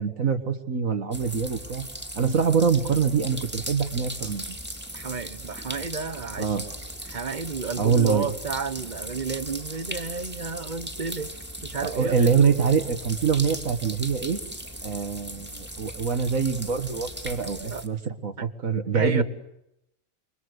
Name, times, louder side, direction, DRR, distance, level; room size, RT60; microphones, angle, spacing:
voice 1, 0.0-1.8 2.2-4.6 6.4-6.7 7.8-8.3 11.8-14.4 14.8-19.2, right 6 dB, 70° right, 7 dB, 2.1 m, -24 dB
sound 1, 1.1-17.9, right 1 dB, 5° right, 2.4 m, -38 dB
voice 2, 4.9-6.6 7.1-11.3 11.6-12.3 17.7-17.8 18.4-18.5 18.9-19.2, right 5 dB, 35° right, 13 dB, 1.2 m, -31 dB
27.5 x 23.0 x 8.1 m, 0.81 s
omnidirectional pair, 1.4 m